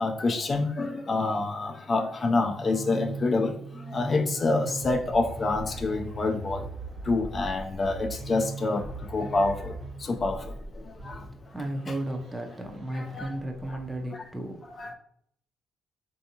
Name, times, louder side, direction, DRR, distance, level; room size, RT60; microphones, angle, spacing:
voice 1, 0.0-6.7 7.1-9.7 10.0-11.2 11.9-12.0 12.9-13.3 13.7-13.8 14.1-14.2 14.8-14.9, left 3 dB, 40° left, 0.4 m, -27 dB
sound 1, 2.2-14.1, right 3 dB, 55° right, 1.2 m, -40 dB
voice 2, 11.5-14.9, right 1 dB, 10° right, 0.6 m, -34 dB
3.3 x 2.7 x 2.7 m
cardioid pair, 90°, 0 cm